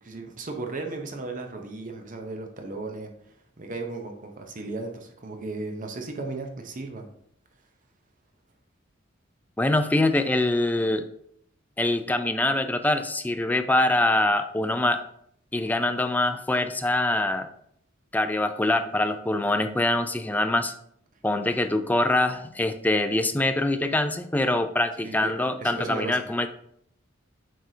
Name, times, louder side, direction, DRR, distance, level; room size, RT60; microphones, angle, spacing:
voice 1, 0.0-3.1 3.6-7.1 25.0-25.3 25.6-26.3, right 3 dB, 40° right, 4 dB, 0.7 m, -35 dB
voice 2, 9.6-11.0 11.8-15.0 15.5-17.5 18.1-20.7 21.2-26.5, left 2 dB, 10° left, 8 dB, 0.4 m, -24 dB
7.6 x 4.7 x 2.8 m, 0.68 s
head